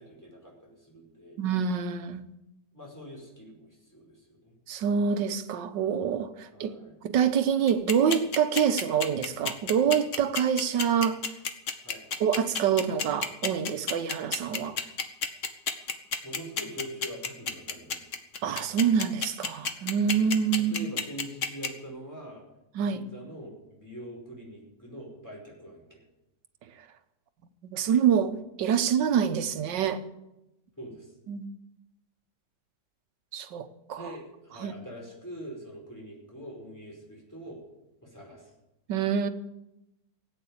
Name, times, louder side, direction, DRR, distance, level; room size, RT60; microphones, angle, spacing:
voice 1, 0.0-1.4 2.7-4.5 6.5-7.0 11.8-12.0 16.2-18.1 20.7-22.4 22.8-26.0 30.8-31.1 33.9-37.6 38.0-38.5, right 1 dB, 10° left, 5.1 m, -44 dB
voice 2, 1.4-2.3 4.7-6.7 7.0-11.2 12.2-14.8 18.4-20.7 22.7-23.0 27.6-30.0 31.3-31.5 33.3-34.1 34.6-34.7 38.9-39.3, right 7 dB, 85° right, 1.7 m, -26 dB
sound 1, 7.7-21.7, left 6 dB, 50° left, 1.4 m, -29 dB
17.0 x 8.8 x 8.6 m
omnidirectional pair, 1.9 m